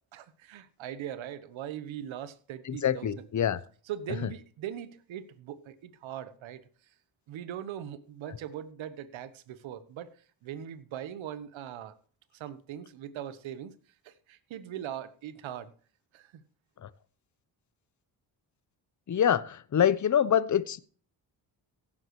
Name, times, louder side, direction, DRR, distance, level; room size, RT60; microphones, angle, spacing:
voice 1, 0.1-3.3 3.9-6.6 7.3-10.1 10.4-11.9 12.3-13.7 14.0-15.7 16.1-16.4, right 10 dB, 75° right, 1.1 m, -40 dB
voice 2, 2.7-3.6 16.8-16.9 19.1-20.8, left 9 dB, 40° left, 0.8 m, -25 dB
16.5 x 7.4 x 3.1 m
supercardioid pair, 50°, 46 cm